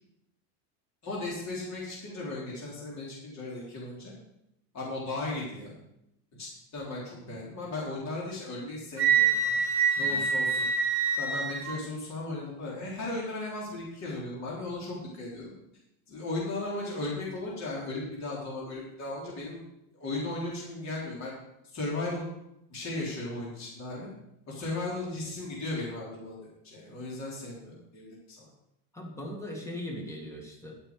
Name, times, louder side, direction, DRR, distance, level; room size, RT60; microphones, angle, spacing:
voice 1, 1.0-4.1 4.7-5.7 6.3-9.6 10.0-10.6 11.1-15.4 16.1-19.6 19.9-21.3 21.7-22.3 22.7-24.1 24.5-28.5, left 2 dB, 35° left, -5 dB, 3.8 m, -36 dB
Wind instrument woodwind instrument, 9.0-11.8, right 5 dB, 25° right, 2.4 m, -26 dB
voice 2, 28.9-30.7, left 1 dB, 5° left, 0 dB, 2.0 m, -39 dB
11.5 x 8.9 x 4.8 m, 0.81 s
supercardioid pair, 140°, 48 cm